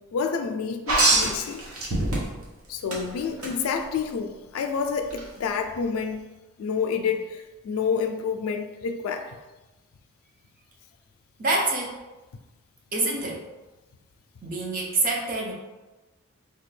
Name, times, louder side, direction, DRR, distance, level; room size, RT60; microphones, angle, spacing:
voice 1, 0.1-1.6 2.7-6.3 6.6-9.4, left 6 dB, 75° left, 7 dB, 0.3 m, -28 dB
sound 1, 0.9-2.5 2.9-3.5 5.1-5.2, right 2 dB, 75° right, 0.9 m, -23 dB
voice 2, 11.4-12.0 12.9-13.4 14.4-15.5, right 2 dB, 40° right, -2 dB, 0.6 m, -26 dB
3.3 x 2.3 x 3.2 m, 1.1 s
head